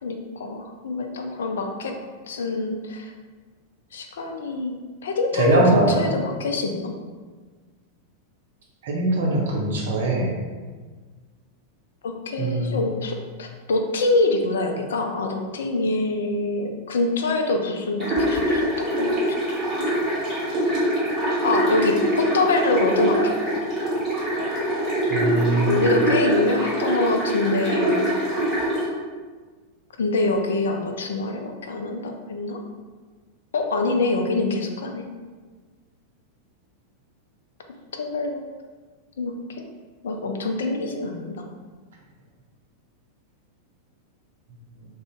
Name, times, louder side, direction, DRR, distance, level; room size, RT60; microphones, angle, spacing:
voice 1, 0.0-2.0 2.2-3.1 3.9-7.0 12.0-19.2 21.4-23.4 25.7-28.0 30.0-32.6 33.5-35.0 37.9-38.4 39.2-39.6 40.0-41.4, left 2 dB, 65° left, 3 dB, 0.3 m, -25 dB
voice 2, 5.3-6.1 8.8-10.3 12.4-12.8 25.1-25.8, right 2 dB, 60° right, -1 dB, 0.6 m, -21 dB
sound 1, 18.0-28.8, right 1 dB, 30° right, 1.3 m, -23 dB
2.5 x 2.1 x 3.5 m, 1.4 s
figure-of-eight pair, 90°, 0 cm